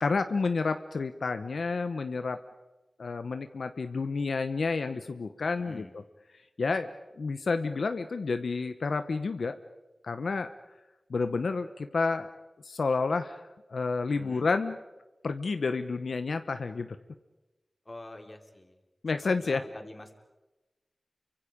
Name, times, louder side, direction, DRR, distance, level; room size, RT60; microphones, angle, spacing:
voice 1, 0.0-2.4 3.0-6.0 6.6-6.9 7.2-9.5 10.0-10.5 11.1-12.3 12.6-13.4 13.7-14.8 15.2-17.0 19.0-19.6, left 4 dB, 90° left, 9 dB, 1.0 m, -30 dB
voice 2, 5.6-5.9 14.2-14.5 17.8-18.8 19.4-20.2, left 1 dB, 30° left, 4 dB, 3.2 m, -46 dB
29.5 x 24.5 x 5.2 m, 1.1 s
wide cardioid pair, 75°, 0 cm